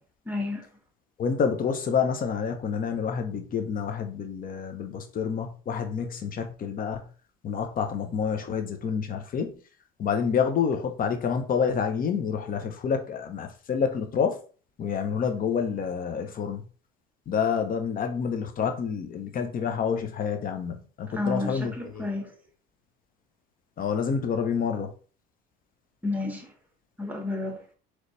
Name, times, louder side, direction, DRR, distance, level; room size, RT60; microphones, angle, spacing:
voice 1, 0.2-0.7 21.1-22.3 26.0-26.5 27.0-27.6, left 2 dB, 10° right, 1.5 m, -31 dB
voice 2, 1.2-7.1 7.4-9.5 10.0-14.4 14.8-16.6 17.3-22.1 23.8-24.9, left 6 dB, 45° left, 0.9 m, -28 dB
4.0 x 3.2 x 3.3 m
supercardioid pair, 85°, 20 cm